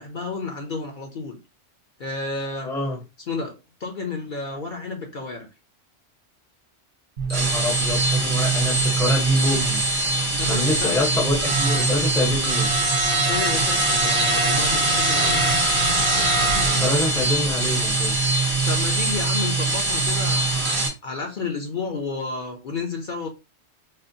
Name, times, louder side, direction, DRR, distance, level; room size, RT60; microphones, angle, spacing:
voice 1, 0.0-1.4 2.0-2.7 3.3-5.5 10.3-11.0 13.2-15.4 18.7-23.3, left 4 dB, 50° left, 0.8 m, -31 dB
voice 2, 2.6-3.0 7.3-9.8 10.5-12.7 16.7-18.2, left 2 dB, 5° left, 0.7 m, -26 dB
sound 1, 7.2-20.9, right 2 dB, 50° right, 1.1 m, -22 dB
4.2 x 2.1 x 2.6 m
omnidirectional pair, 1.2 m